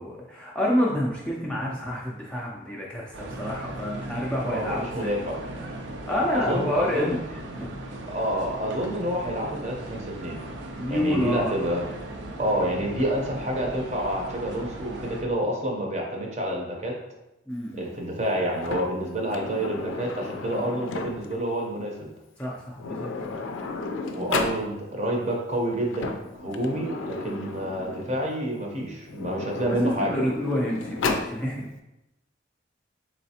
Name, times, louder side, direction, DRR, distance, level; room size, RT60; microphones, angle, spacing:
voice 1, 0.0-5.2 6.1-7.7 10.8-11.5 15.0-15.1 17.5-17.9 22.4-23.4 29.7-31.7, left 1 dB, 5° left, -5 dB, 0.4 m, -28 dB
sound 1, 3.1-15.2, right 1 dB, 75° right, 0.5 m, -38 dB
voice 2, 4.4-5.4 6.3-7.2 8.1-10.4 10.9-11.9 12.4-16.9 17.7-22.1 24.0-30.3, right 1 dB, 35° right, 0 dB, 0.6 m, -28 dB
Sliding door, 18.6-21.4 22.4-22.5 22.7-24.6 25.7-28.3 29.0-31.3, left 3 dB, 85° left, 0.4 m, -33 dB
4.0 x 3.1 x 2.8 m, 0.94 s
head